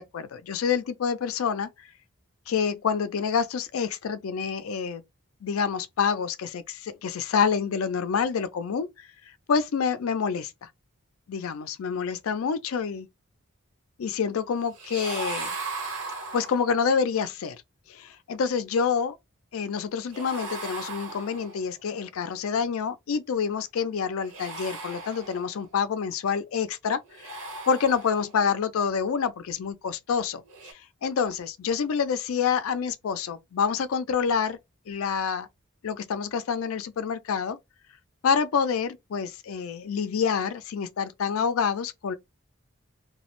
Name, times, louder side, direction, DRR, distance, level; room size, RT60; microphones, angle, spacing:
voice 1, 0.0-1.7 2.5-5.0 5.4-9.1 9.5-10.7 11.3-13.1 14.0-15.6 16.3-17.6 17.9-19.2 19.5-27.4 27.7-34.6 34.9-35.5 35.8-37.6 38.2-42.2, left 6 dB, 80° left, 0.4 m, -27 dB
sound 1, 14.7-16.9 20.1-21.8 24.2-25.7 27.1-28.4 30.5-30.7, right 3 dB, 70° right, 1.0 m, -37 dB
2.2 x 2.0 x 2.9 m
head